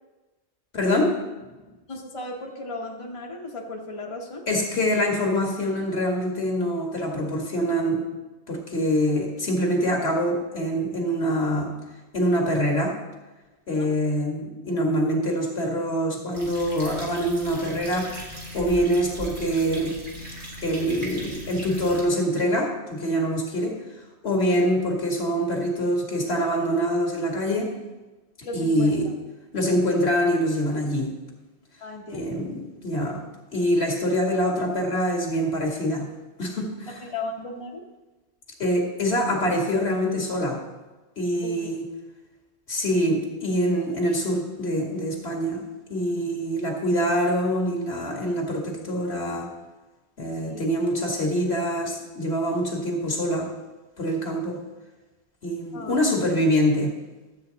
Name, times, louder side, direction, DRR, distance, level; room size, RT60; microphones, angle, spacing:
voice 1, 0.7-1.2 4.5-8.0 8.5-11.7 12.1-13.0 13.7-18.2 18.5-20.0 20.6-23.8 24.2-27.7 28.5-29.1 29.5-31.1 32.1-33.2 33.5-36.1 36.4-37.0 38.6-40.6 41.2-41.8 42.7-49.5 50.2-53.5 54.0-54.6 55.4-56.9, equal, 70° left, 1 dB, 2.1 m, -25 dB
voice 2, 1.9-4.5 13.7-13.9 28.4-29.1 31.8-32.4 37.0-37.9 41.4-41.7 50.4-50.7 55.7-56.1, left 2 dB, 30° left, 0 dB, 1.0 m, -36 dB
sound 1, 16.3-22.0, right 1 dB, 85° right, 2.5 m, -38 dB
12.0 x 8.0 x 3.9 m, 1.2 s
omnidirectional pair, 1.1 m